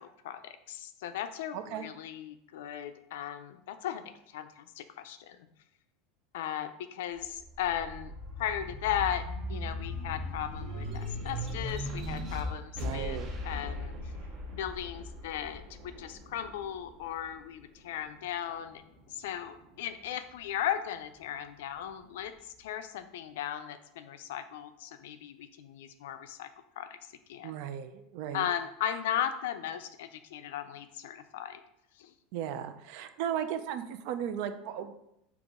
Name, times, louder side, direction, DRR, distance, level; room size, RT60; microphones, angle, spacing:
voice 1, 0.0-5.4 6.3-8.1 8.4-13.2 13.4-14.0 14.6-18.8 19.1-26.5 26.8-27.0 27.3-27.6 28.3-31.6 32.0-32.1, left 10 dB, 85° left, 10 dB, 0.4 m, -37 dB
voice 2, 1.5-1.9 12.8-13.3 27.4-28.5 32.3-35.0, right 9 dB, 60° right, 10 dB, 0.4 m, -36 dB
sound 1, 7.2-18.0 18.5-19.6, left 1 dB, 35° right, 0.8 m, -38 dB
3.9 x 2.9 x 3.6 m, 0.81 s
supercardioid pair, 150°, 0 cm